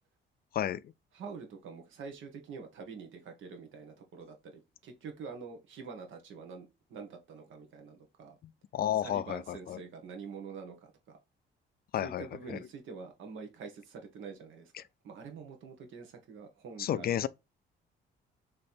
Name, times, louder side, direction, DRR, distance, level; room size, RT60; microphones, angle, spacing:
voice 1, 1.1-8.3 9.0-11.2 12.0-14.7 15.0-17.3, right 5 dB, 75° right, 1.3 m, -46 dB
voice 2, 8.7-9.8 11.9-12.6 14.7-14.8 16.8-17.3, left 11 dB, 50° left, 0.4 m, -32 dB
3.4 x 3.2 x 4.3 m
cardioid pair, 90°, 20 cm